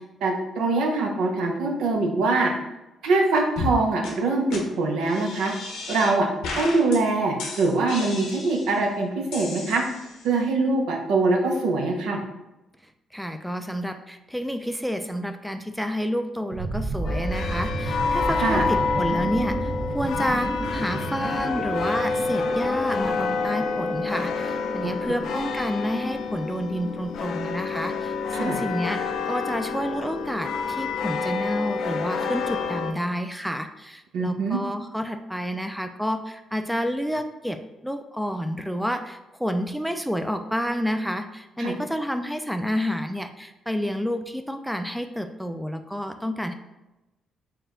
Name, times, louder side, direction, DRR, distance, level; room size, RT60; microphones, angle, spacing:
voice 1, 0.2-2.5 3.0-5.5 5.9-6.3 6.6-9.8 10.2-12.2 18.4-18.7 24.8-24.9 28.3-28.6 34.1-34.6 41.6-41.7, right 3 dB, 85° right, 2 dB, 0.6 m, -23 dB
sound 1, 3.6-3.8 4.0-4.1 4.5-4.6 5.0-6.1 6.4-7.0 7.4-8.8 9.3-10.3, left 3 dB, 90° left, 0.8 m, -34 dB
voice 2, 13.1-46.5, equal, ahead, 7 dB, 0.3 m, -29 dB
sound 2, 16.5-25.4, right 2 dB, 55° right, 0.8 m, -32 dB
sound 3, 17.0-32.9, left 4 dB, 75° left, 0.4 m, -28 dB
4.3 x 2.3 x 3.7 m, 0.99 s
cardioid pair, 90°, 0 cm